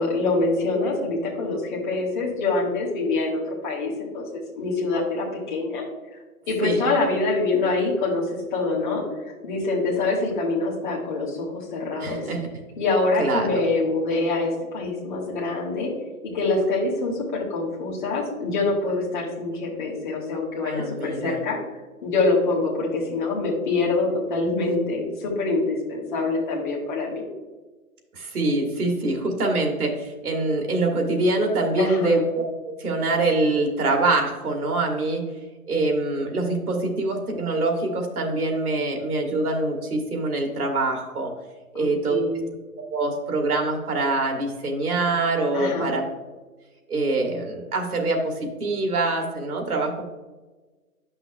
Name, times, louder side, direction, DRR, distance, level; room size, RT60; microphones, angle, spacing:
voice 1, 0.0-5.8 6.5-9.0 9.4-12.2 12.8-15.9 16.3-21.6 22.0-27.3 31.8-32.2 41.7-42.5 45.5-46.0, left 3 dB, 35° left, -4 dB, 1.4 m, -25 dB
voice 2, 12.0-12.5 13.2-13.6 20.6-21.4 28.1-35.3 35.7-41.3 41.7-42.4 42.9-46.0 46.9-50.0, right 2 dB, 75° right, 2 dB, 1.8 m, -24 dB
10.0 x 5.8 x 2.2 m, 1.3 s
hypercardioid pair, 175°, 45 cm